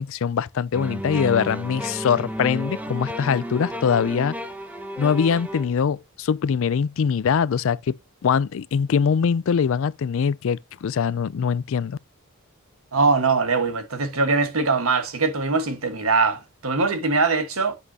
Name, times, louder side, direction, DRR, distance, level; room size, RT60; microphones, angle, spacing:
voice 1, 0.0-4.4 5.0-7.9 8.2-12.0, left 6 dB, 70° left, 0.4 m, -23 dB
sound 1, 0.7-5.7, equal, 5° right, 0.8 m, -32 dB
voice 2, 12.9-17.7, right 4 dB, 80° right, 1.5 m, -22 dB
8.1 x 7.6 x 2.8 m
head